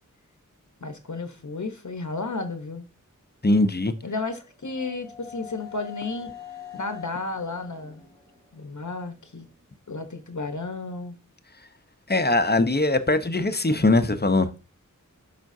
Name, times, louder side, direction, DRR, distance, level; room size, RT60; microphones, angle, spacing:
voice 1, 0.8-2.9 4.0-6.3 6.7-8.0 8.5-9.5 9.9-11.2, left 3 dB, 65° left, 1.1 m, -33 dB
voice 2, 3.4-3.9 12.1-14.5, left 2 dB, 30° left, 0.9 m, -21 dB
sound 1, 4.0-9.7, left 10 dB, 30° right, 3.1 m, -45 dB
12.5 x 5.0 x 2.7 m
wide cardioid pair, 45°, 32 cm